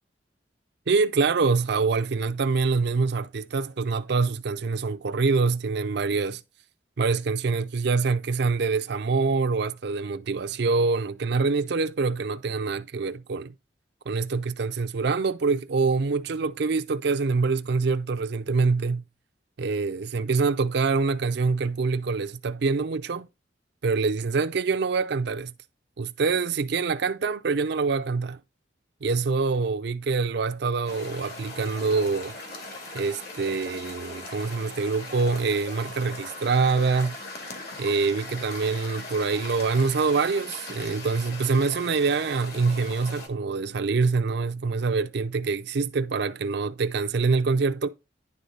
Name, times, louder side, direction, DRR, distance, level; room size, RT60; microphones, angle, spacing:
voice 1, 0.9-6.4 7.0-13.5 14.1-19.0 19.6-23.3 23.8-25.5 26.0-28.4 29.0-32.3 32.9-37.2 37.8-47.9, right 4 dB, 65° right, 0.5 m, -25 dB
sound 1, 30.9-43.3, left 2 dB, 60° left, 2.1 m, -40 dB
9.7 x 3.5 x 5.3 m
head